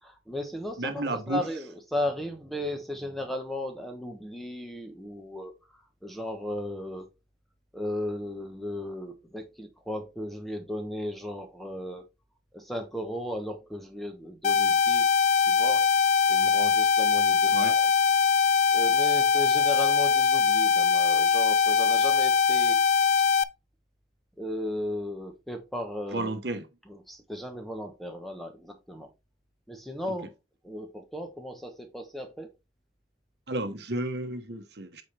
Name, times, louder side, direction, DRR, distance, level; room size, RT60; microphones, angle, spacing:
voice 1, 0.3-7.1 7.7-12.0 12.5-15.9 16.3-17.9 18.7-22.8 24.4-26.3 26.9-29.1 29.7-30.3 30.6-32.5, left 1 dB, ahead, 1.0 m, -36 dB
voice 2, 0.8-1.4 17.5-17.8 26.1-26.6 30.1-30.2 33.5-35.0, right 2 dB, 60° right, 1.1 m, -32 dB
sound 1, 14.4-23.4, left 6 dB, 40° left, 0.3 m, -22 dB
8.3 x 4.3 x 3.3 m
head